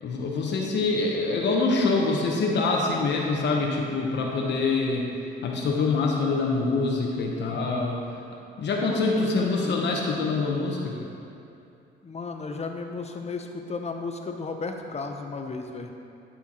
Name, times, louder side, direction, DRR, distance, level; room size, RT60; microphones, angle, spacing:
voice 1, 0.0-5.1 5.4-8.0 8.6-11.1, left 3 dB, 65° left, -1 dB, 0.9 m, -25 dB
voice 2, 8.7-10.0 12.0-15.9, left 4 dB, 35° left, 4 dB, 0.8 m, -35 dB
11.0 x 4.4 x 4.3 m, 2.6 s
cardioid pair, 90°, 20 cm